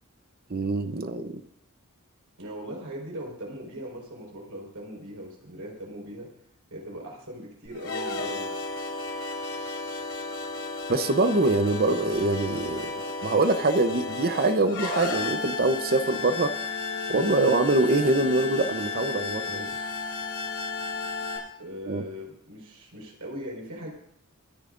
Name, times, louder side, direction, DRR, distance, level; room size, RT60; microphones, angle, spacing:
voice 1, 0.5-1.4 10.9-16.5 17.1-19.7 21.9-22.0, right 2 dB, 45° right, 8 dB, 0.9 m, -24 dB
voice 2, 2.4-6.3 6.7-8.6 21.6-23.9, equal, 80° right, -2 dB, 4.9 m, -39 dB
sound 1, 7.7-21.4, left 3 dB, 80° left, 6.0 m, -33 dB
25.5 x 10.5 x 2.6 m, 0.71 s
head